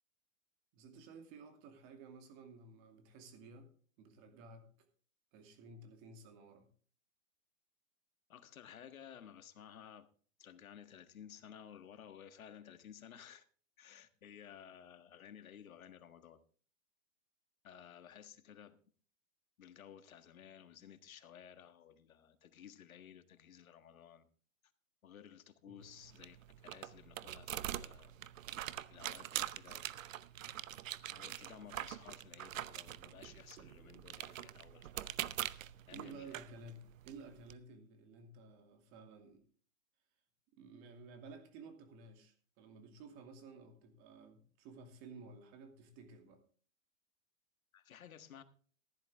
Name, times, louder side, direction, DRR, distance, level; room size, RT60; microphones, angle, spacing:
voice 1, 0.7-3.7 4.0-4.7 5.3-6.7 25.7-25.9 30.4-30.5 35.9-39.4 40.5-46.4, right 3 dB, 30° right, 2.5 m, -54 dB
voice 2, 8.3-10.1 10.4-13.4 13.8-16.4 17.6-18.8 19.6-24.3 25.0-28.1 28.9-29.9 31.1-35.1 35.9-36.4 47.7-48.4, left 9 dB, 85° left, 1.6 m, -55 dB
sound 1, 25.8-37.5, right 12 dB, 70° right, 0.8 m, -44 dB
15.0 x 11.0 x 3.5 m
hypercardioid pair, 155°, 41 cm